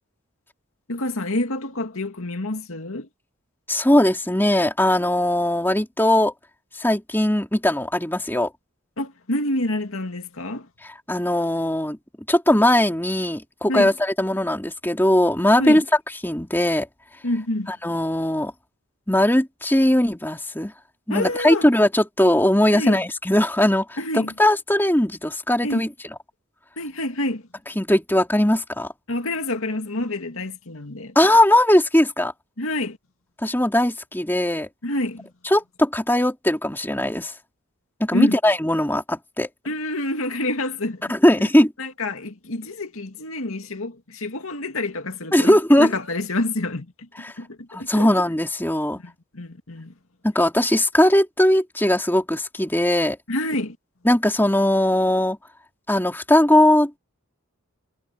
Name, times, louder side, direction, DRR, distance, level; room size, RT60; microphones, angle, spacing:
voice 1, 0.9-3.1 9.0-10.7 13.7-13.9 15.6-15.8 17.2-17.7 21.1-21.7 22.7-23.0 24.0-24.3 25.6-25.9 26.8-27.4 29.1-31.1 32.6-33.0 34.8-35.3 38.1-38.4 39.6-41.0 41.4-41.5 41.8-47.1 47.4-48.1 49.0-49.9 53.3-53.8, left 1 dB, 75° left, 2.3 m, -27 dB
voice 2, 3.7-6.3 6.8-8.5 11.1-12.0 12.3-15.8 16.2-16.9 17.8-18.5 19.1-20.7 21.1-24.0 24.4-25.9 27.8-28.9 31.1-32.3 33.4-34.7 35.4-37.3 38.0-39.5 41.1-41.7 45.3-45.9 47.2-47.3 47.7-49.0 50.2-53.2 54.0-55.4 55.9-56.9, left 1 dB, 10° left, 3.1 m, -19 dB
head